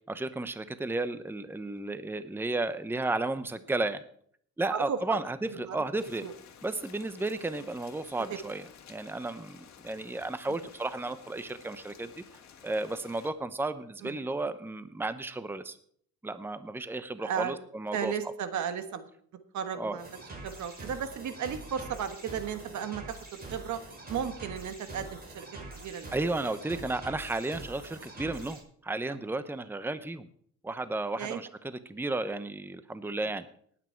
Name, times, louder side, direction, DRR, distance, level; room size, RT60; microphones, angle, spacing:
voice 1, 0.1-4.0 4.6-6.2 6.6-8.6 8.9-12.2 12.6-15.8 16.2-18.1 19.7-20.0 26.1-30.3 30.6-33.5, right 2 dB, 5° right, 12 dB, 0.8 m, -33 dB
voice 2, 4.7-5.2 5.5-5.8 6.2-6.3 10.5-10.6 14.0-14.2 17.2-17.6 17.9-19.1 19.5-20.1 20.4-23.8 24.1-25.5 25.7-26.5 29.1-29.2 31.2-31.4 33.2-33.3, right 8 dB, 70° right, 9 dB, 1.5 m, -35 dB
Rain, 6.0-13.3, left 8 dB, 65° left, 1.8 m, -53 dB
sound 1, 20.0-28.6, right 2 dB, 30° right, 5.6 m, -45 dB
19.0 x 8.7 x 4.6 m, 0.62 s
cardioid pair, 90°, 30 cm